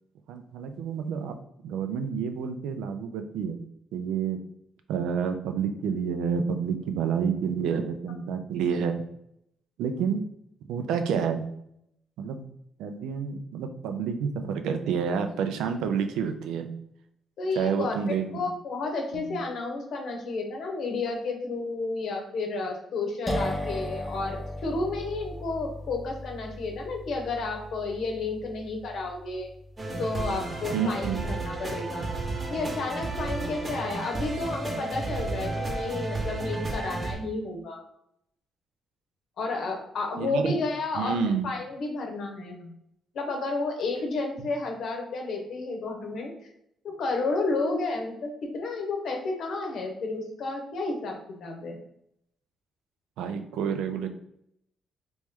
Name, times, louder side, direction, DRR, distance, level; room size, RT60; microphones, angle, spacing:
voice 1, 0.3-1.4 1.6-3.6 3.9-4.4 4.9-9.0 9.8-10.2 10.7-11.4 12.2-12.5 12.8-16.8 17.6-18.5 19.1-19.4 30.7-31.3 40.2-40.6 40.9-41.5 44.4-44.5 53.2-54.1, right 6 dB, 90° right, 7 dB, 0.4 m, -29 dB
voice 2, 17.4-29.5 30.0-32.1 32.5-37.8 39.4-42.7 43.1-46.3 46.8-51.2 51.4-51.8, left 3 dB, 70° left, 2 dB, 0.9 m, -31 dB
sound 1, 23.3-30.8, left 1 dB, 15° left, 0.6 m, -37 dB
sound 2, 29.8-37.1, right 2 dB, 30° right, 0.9 m, -32 dB
3.1 x 3.0 x 3.6 m, 0.75 s
cardioid pair, 90°, 0 cm